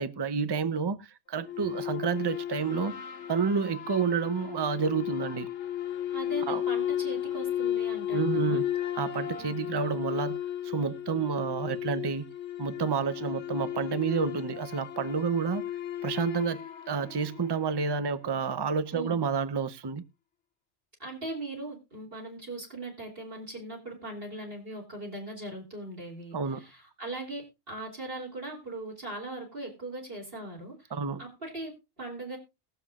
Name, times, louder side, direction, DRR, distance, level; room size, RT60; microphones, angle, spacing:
voice 1, 0.0-3.0 3.3-5.5 6.5-6.6 8.1-8.6 9.0-10.4 10.6-12.3 12.6-15.6 16.0-20.0 26.3-26.6 30.9-31.2, right 5 dB, 25° right, 0.6 m, -29 dB
sound 1, 1.4-18.0, left 11 dB, 75° left, 1.2 m, -34 dB
voice 2, 6.1-8.7 9.4-9.5 18.9-19.2 21.0-32.4, right 2 dB, 50° right, 3.5 m, -40 dB
21.0 x 7.1 x 2.4 m
omnidirectional pair, 1.2 m